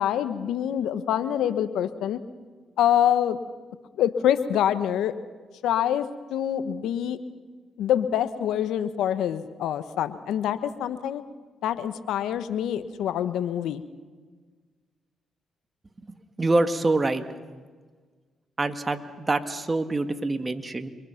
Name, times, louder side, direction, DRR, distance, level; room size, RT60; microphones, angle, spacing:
voice 1, 0.0-2.2 2.8-3.4 4.0-5.1 5.6-7.2 7.8-11.2 11.6-13.8, left 10 dB, 80° left, 12 dB, 1.2 m, -25 dB
voice 2, 16.4-17.2 18.6-20.9, right 2 dB, 25° right, 8 dB, 1.9 m, -25 dB
29.0 x 23.0 x 5.9 m, 1.5 s
supercardioid pair, 65°, 0 cm